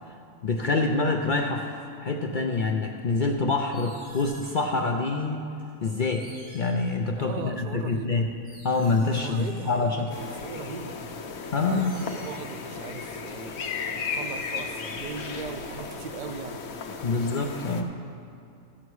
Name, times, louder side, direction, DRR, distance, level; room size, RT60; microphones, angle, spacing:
voice 1, 0.4-1.7 2.0-5.5 5.8-6.3 6.5-8.3 8.6-10.1 11.5-11.9 17.0-17.9, left 3 dB, 55° left, 2 dB, 0.5 m, -26 dB
sound 1, 3.7-4.8 5.6-5.7 6.1-7.3 8.0-10.5 10.9-12.5 13.6-13.7 14.0-16.0, equal, 55° right, 3.6 m, -52 dB
voice 2, 7.2-8.1 9.2-11.0 11.5-13.5 13.9-16.6, right 6 dB, 85° right, 9 dB, 0.4 m, -39 dB
sound 2, 10.1-17.8, left 5 dB, 85° left, 1.2 m, -35 dB
14.0 x 7.3 x 4.7 m, 2.6 s
omnidirectional pair, 1.4 m